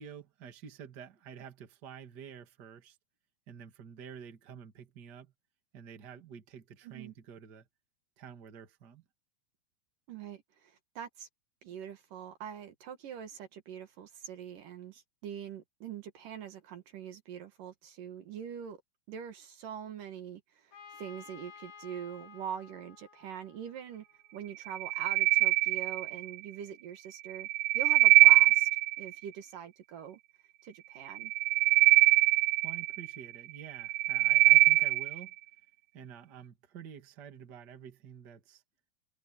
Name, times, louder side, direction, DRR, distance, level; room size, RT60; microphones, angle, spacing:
voice 1, 0.0-3.0 3.5-5.3 5.7-7.7 8.2-9.0 32.6-35.3 35.9-38.6, right 8 dB, 35° right, 2.2 m, -49 dB
voice 2, 6.8-7.1 10.1-11.3 11.6-18.8 19.1-24.0 24.3-27.5 27.7-28.7 29.0-30.2 30.6-31.3, right 8 dB, 65° right, 3.0 m, -43 dB
Trumpet, 20.7-24.4, left 6 dB, 70° left, 4.9 m, -53 dB
sound 1, 24.7-26.3 27.3-29.1 31.1-33.2 33.7-35.2, right 18 dB, 90° right, 1.9 m, -23 dB
omnidirectional pair, 4.4 m